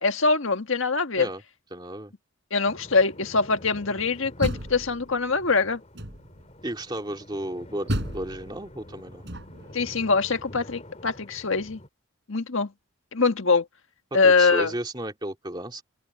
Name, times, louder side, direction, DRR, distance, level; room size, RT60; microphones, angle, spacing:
voice 1, 0.0-1.3 2.5-5.8 9.7-11.8 12.3-12.7 13.1-13.7 14.1-14.7, left 4 dB, 60° left, 1.6 m, -23 dB
voice 2, 1.7-2.1 6.6-9.2 14.1-15.8, right 1 dB, 20° right, 2.5 m, -33 dB
sound 1, 2.7-11.9, left 1 dB, 30° left, 2.8 m, -47 dB
Door, 4.1-5.4 5.9-6.5 7.9-9.8, equal, 50° right, 5.7 m, -33 dB
open air
head